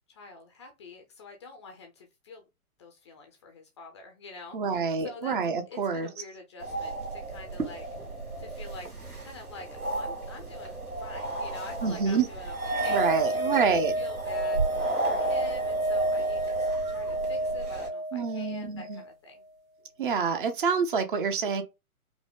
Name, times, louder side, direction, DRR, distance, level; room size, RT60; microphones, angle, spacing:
voice 1, 0.1-2.5 2.8-5.3 5.7-7.9 8.4-8.9 9.2-19.5, left 3 dB, 20° left, 0.5 m, -46 dB
voice 2, 4.5-6.1 11.8-12.3 12.9-13.9 18.1-19.0 20.0-21.6, right 5 dB, 35° right, 0.8 m, -27 dB
sound 1, 6.6-17.9, right 2 dB, 85° right, 2.2 m, -34 dB
sound 2, 12.5-19.1, right 2 dB, 65° right, 1.9 m, -30 dB
5.0 x 2.1 x 3.6 m
figure-of-eight pair, 120°, 44 cm